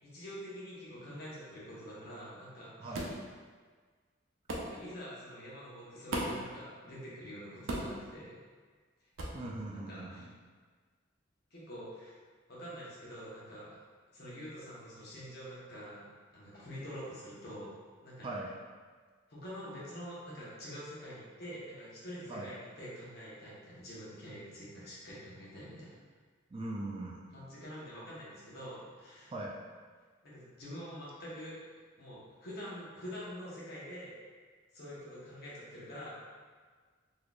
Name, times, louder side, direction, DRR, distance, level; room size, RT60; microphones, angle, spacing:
voice 1, 0.0-3.1 4.6-8.4 9.7-10.3 11.5-12.2 12.5-13.8 14.1-16.0 16.3-17.7 18.0-18.3 19.3-26.0 27.3-29.3 30.2-31.6 32.0-34.2 34.7-36.2, equal, 55° left, -7 dB, 1.1 m, -46 dB
voice 2, 2.8-3.1 9.3-10.3 18.2-18.5 22.3-22.5 26.5-27.3 29.3-29.6, right 2 dB, 25° right, -2 dB, 0.3 m, -40 dB
sound 1, 2.9-3.2 4.5-4.7 6.1-6.5 7.7-8.0 9.2-9.4, right 1 dB, 85° right, 0.6 m, -35 dB
4.0 x 3.1 x 2.4 m, 1.5 s
head